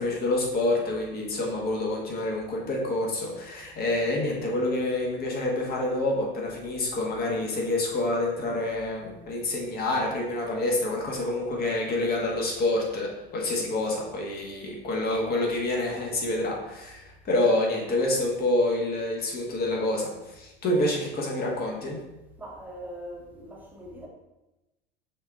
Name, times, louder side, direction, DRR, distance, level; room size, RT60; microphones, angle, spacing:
voice 1, 0.0-22.0, left 2 dB, 30° left, -1 dB, 1.3 m, -27 dB
voice 2, 22.4-24.1, right 1 dB, 5° right, -3 dB, 1.1 m, -41 dB
5.4 x 3.6 x 2.4 m, 0.98 s
figure-of-eight pair, 80°, 29 cm